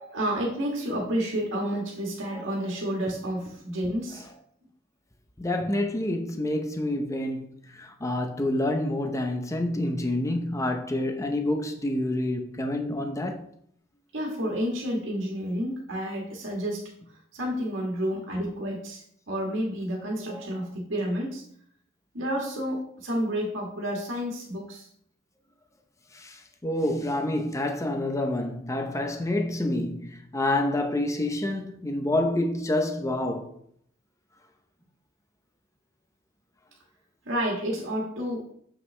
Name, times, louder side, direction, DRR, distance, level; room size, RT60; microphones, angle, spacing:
voice 1, 0.0-4.3 14.1-16.8 17.1-21.4 22.1-24.9 37.2-38.5, equal, 85° right, 1.6 m, -30 dB
voice 2, 5.4-13.4 26.1-33.5, left 1 dB, 15° left, 0.7 m, -28 dB
7.3 x 5.5 x 3.3 m
head